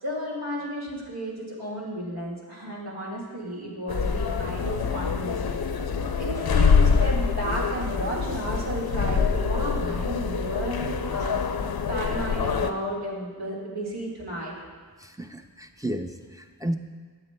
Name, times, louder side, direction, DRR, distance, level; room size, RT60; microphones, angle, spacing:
voice 1, 0.0-5.3 6.2-11.4 11.9-14.5, equal, 80° right, -4 dB, 1.9 m, -32 dB
sound 1, 3.9-12.7, left 5 dB, 75° left, 0.5 m, -25 dB
voice 2, 15.0-16.7, right 1 dB, 10° right, 3 dB, 0.4 m, -33 dB
12.0 x 7.2 x 2.2 m, 1.5 s
wide cardioid pair, 55°, 38 cm